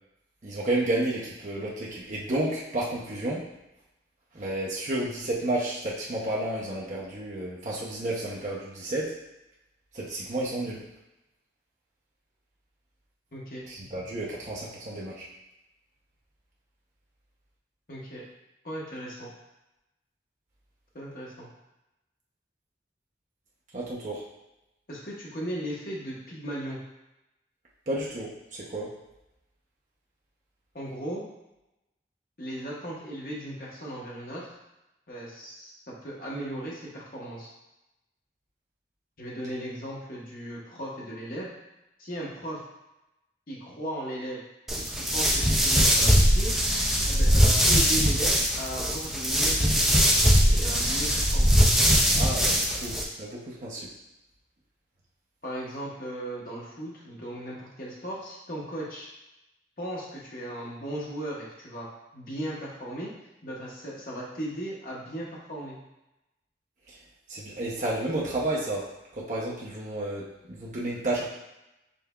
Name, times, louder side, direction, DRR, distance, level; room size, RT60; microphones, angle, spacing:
voice 1, 0.4-3.5 4.3-9.2 9.9-10.8 13.7-15.3 23.7-24.2 27.9-28.9 52.1-53.9 66.9-67.0 67.3-68.9 69.2-71.3, right 1 dB, 45° right, -5 dB, 0.6 m, -31 dB
voice 2, 13.3-13.6 17.9-18.2 18.6-19.3 20.9-21.5 24.9-26.8 30.7-31.2 32.4-34.6 35.1-37.5 39.2-41.5 42.0-42.6 43.5-44.4 44.7-46.6 47.1-50.0 50.5-51.6 55.4-59.1 59.8-61.9 62.1-63.1 63.4-65.8, right 1 dB, 55° left, -4 dB, 1.0 m, -37 dB
sound 1, 44.7-53.0, equal, ahead, 0.4 m, -21 dB
5.3 x 3.3 x 2.3 m, 0.93 s
head